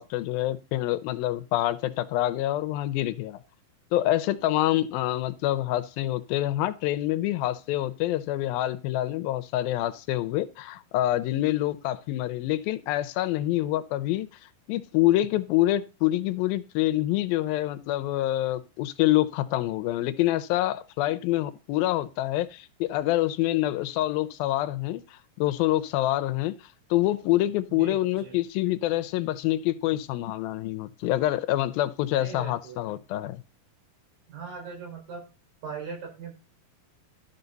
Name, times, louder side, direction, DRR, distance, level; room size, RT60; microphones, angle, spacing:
voice 1, 0.0-3.4 3.9-14.3 14.7-26.5 26.9-33.4, left 15 dB, 85° left, 2.5 m, -26 dB
voice 2, 27.7-28.4 29.2-29.3 32.1-32.8 34.3-35.2 35.6-36.4, right 5 dB, 70° right, 6.6 m, -40 dB
12.0 x 6.8 x 4.0 m
omnidirectional pair, 4.2 m